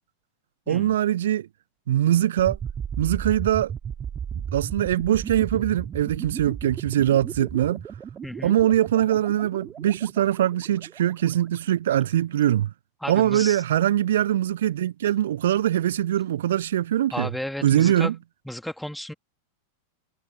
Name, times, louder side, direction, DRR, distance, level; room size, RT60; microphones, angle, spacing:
voice 1, 0.7-1.5 1.9-2.6 3.0-3.7 4.5-7.8 8.4-12.7 13.1-17.3 17.6-18.2, right 12 dB, 60° right, 0.7 m, -22 dB
sound 1, 2.4-11.3, right 8 dB, 25° right, 5.3 m, -35 dB
voice 2, 8.2-8.5 13.0-13.6 17.1-18.1 18.5-19.1, left 1 dB, ahead, 2.8 m, -33 dB
figure-of-eight pair, 90°, 0 cm